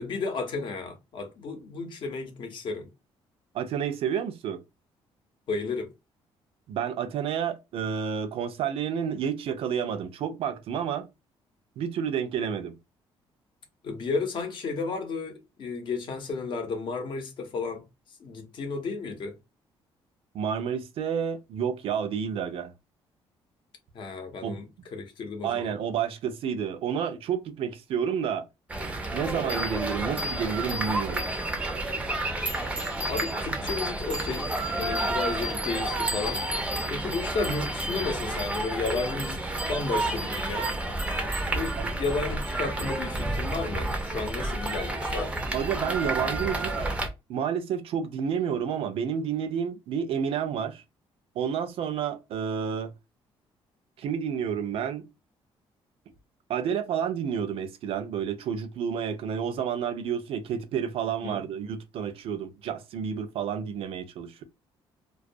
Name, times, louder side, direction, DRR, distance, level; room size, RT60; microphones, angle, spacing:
voice 1, 0.0-2.9 5.5-5.9 13.8-17.8 18.2-19.3 23.9-24.7 24.9-25.7 33.0-34.5 34.8-36.4 36.9-40.7 41.5-45.4 61.2-61.4, left 4 dB, 50° left, 0.7 m, -33 dB
voice 2, 3.5-4.6 6.7-11.1 11.8-12.8 20.3-22.7 24.4-24.6 25.4-28.5 29.1-31.3 41.8-41.9 45.5-46.9 47.3-50.8 51.4-52.9 54.0-55.0 56.5-64.4, right 7 dB, 65° right, 0.5 m, -30 dB
sound 1, 28.7-47.1, right 2 dB, 10° right, 0.4 m, -30 dB
2.3 x 2.2 x 2.5 m
cardioid pair, 140°, 10 cm